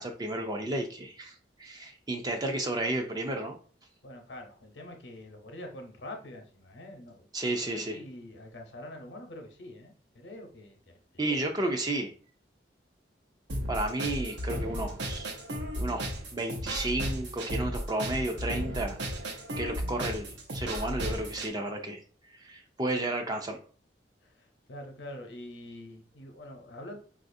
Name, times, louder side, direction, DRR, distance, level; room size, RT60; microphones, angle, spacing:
voice 1, 0.0-1.3 1.6-3.5 7.3-8.0 11.2-12.1 13.7-15.3 15.7-19.0 19.2-22.0 22.4-23.6, right 2 dB, 25° right, 4 dB, 0.3 m, -32 dB
voice 2, 4.0-11.4 24.2-27.0, left 1 dB, 85° left, 3 dB, 0.8 m, -45 dB
sound 1, 13.5-21.5, right 1 dB, 80° right, 0.8 m, -35 dB
4.0 x 2.4 x 2.6 m, 0.41 s
head